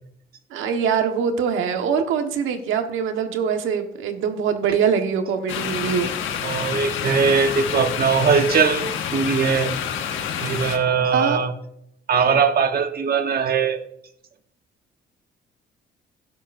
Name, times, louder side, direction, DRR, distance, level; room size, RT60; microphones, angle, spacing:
voice 1, 0.5-6.1 11.1-11.4, right 7 dB, 85° right, 5 dB, 1.4 m, -23 dB
sound 1, 5.5-10.8, left 8 dB, 80° left, 1.1 m, -28 dB
voice 2, 6.4-8.8 9.1-9.7 10.4-11.5 12.1-13.8, right 6 dB, 50° right, 7 dB, 1.2 m, -20 dB
16.5 x 7.4 x 2.6 m, 0.70 s
cardioid pair, 90°, 20 cm